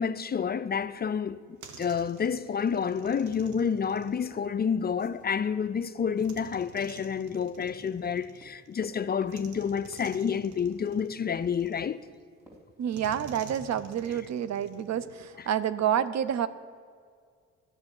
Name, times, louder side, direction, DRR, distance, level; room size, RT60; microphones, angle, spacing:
voice 1, 0.0-12.0, left 7 dB, 30° left, 0.5 m, -29 dB
sound 1, 1.3-5.2 6.2-8.8 9.3-12.2 12.9-15.3, right 5 dB, 80° right, 1.5 m, -50 dB
Run, 2.6-4.0 4.3-14.2, right 1 dB, 10° right, 3.4 m, -56 dB
voice 2, 12.8-16.5, right 9 dB, 60° right, 0.7 m, -29 dB
13.0 x 6.8 x 9.8 m
cardioid pair, 90°, 30 cm